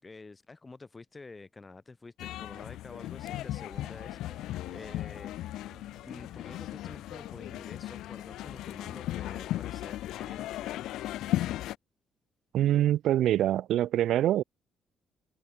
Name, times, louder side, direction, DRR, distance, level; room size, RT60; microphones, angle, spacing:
voice 1, 0.0-5.6 6.0-10.9, left 3 dB, 25° left, 4.3 m, -49 dB
sound 1, 2.2-11.7, left 14 dB, 85° left, 1.6 m, -36 dB
sound 2, 3.6-10.3, right 4 dB, 30° right, 6.7 m, -60 dB
voice 2, 12.5-14.4, right 12 dB, 80° right, 0.5 m, -25 dB
cardioid pair, 90°, 0 cm